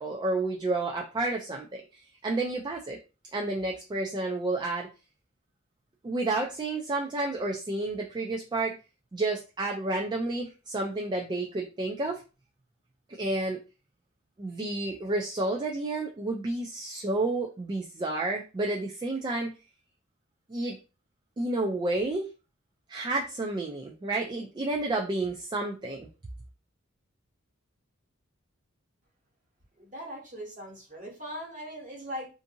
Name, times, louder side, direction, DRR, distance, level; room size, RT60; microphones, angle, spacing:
voice 1, 0.0-3.0 3.3-4.9 6.0-8.8 9.1-12.2 13.1-13.6 14.4-19.5 20.5-20.8 21.4-22.3 22.9-26.1, right 2 dB, 20° right, 1 dB, 0.3 m, -30 dB
voice 2, 29.8-32.3, equal, 40° right, -4 dB, 1.3 m, -40 dB
2.6 x 2.6 x 2.6 m, 0.32 s
head